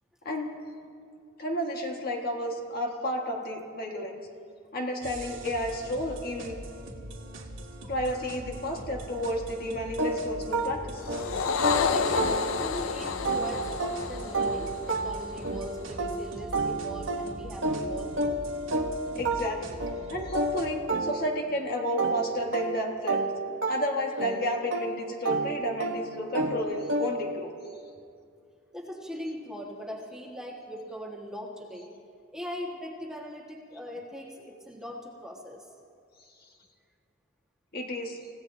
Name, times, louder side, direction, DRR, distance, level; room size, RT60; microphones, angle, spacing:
voice 1, 1.4-4.2 4.7-6.6 7.9-11.2 19.1-19.8 20.1-23.2 23.7-27.5 37.7-38.2, equal, 50° left, 1 dB, 1.6 m, -31 dB
sound 1, 5.0-20.7, right 1 dB, 85° right, 1.7 m, -42 dB
sound 2, 10.0-12.8 13.2-21.6 22.0-27.4, right 2 dB, 70° right, 1.1 m, -31 dB
sound 3, 11.0-15.6, left 5 dB, 85° left, 0.6 m, -30 dB
voice 2, 11.9-18.4 28.7-31.9 32.3-35.7, equal, 5° right, -2 dB, 1.5 m, -40 dB
29.5 x 16.0 x 2.7 m, 2.3 s
head